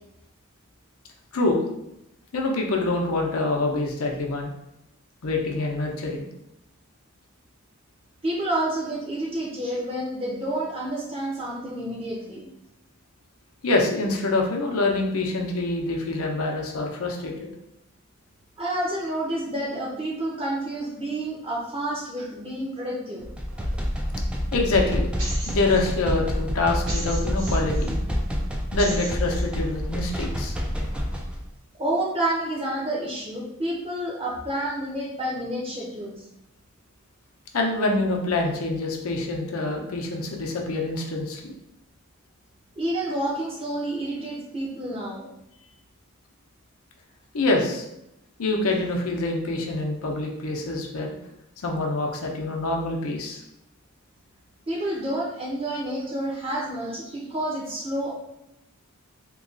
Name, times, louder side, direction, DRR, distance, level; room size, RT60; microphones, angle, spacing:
voice 1, 2.3-4.5 5.2-6.2 13.6-17.5 23.6-23.7 24.5-25.1 25.5-27.9 28.7-30.6 37.5-41.5 47.3-47.8 48.4-51.1 51.6-53.4, left 2 dB, 80° left, 1 dB, 0.6 m, -25 dB
voice 2, 8.2-12.5 18.6-23.3 31.8-36.1 42.8-45.3 54.7-58.1, right 1 dB, 25° right, -4 dB, 0.9 m, -29 dB
sound 1, 23.2-31.4, equal, 5° right, 0.3 m, -27 dB
sound 2, 25.2-25.9 26.9-27.9 28.8-29.5, right 1 dB, 75° right, 1.0 m, -36 dB
3.0 x 2.3 x 3.8 m, 0.83 s
head